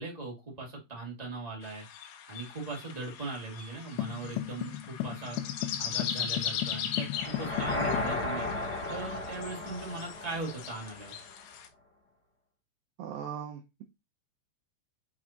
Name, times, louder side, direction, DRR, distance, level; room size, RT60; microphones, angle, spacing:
voice 1, 0.0-1.8 2.3-5.4 5.8-7.1 7.4-8.5 8.9-11.1, right 3 dB, 30° right, 0.7 m, -39 dB
sound 1, 1.6-11.7, left 8 dB, 70° left, 2.7 m, -39 dB
sound 2, 4.0-8.2, left 13 dB, 85° left, 2.2 m, -36 dB
sound 3, 7.1-11.2, left 2 dB, 15° left, 3.0 m, -35 dB
voice 2, 13.0-13.8, right 8 dB, 85° right, 2.0 m, -39 dB
6.6 x 5.9 x 2.9 m
omnidirectional pair, 5.1 m